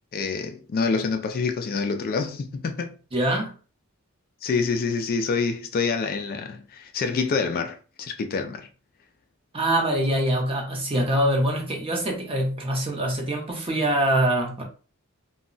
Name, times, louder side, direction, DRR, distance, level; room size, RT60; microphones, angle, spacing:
voice 1, 0.1-2.9 4.4-8.7, left 4 dB, 45° left, 0.3 m, -27 dB
voice 2, 3.1-3.5 9.5-14.6, right 1 dB, 25° right, 0.8 m, -24 dB
2.2 x 2.0 x 3.8 m
head